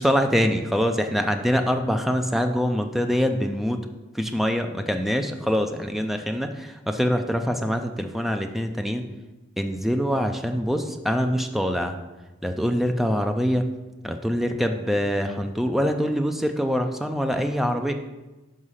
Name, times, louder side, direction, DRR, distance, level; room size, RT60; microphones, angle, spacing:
voice 1, 0.0-3.8 4.1-9.0 9.6-12.0 12.4-13.7 14.0-17.9, equal, ahead, 5 dB, 0.4 m, -24 dB
6.4 x 5.0 x 5.6 m, 1.1 s
head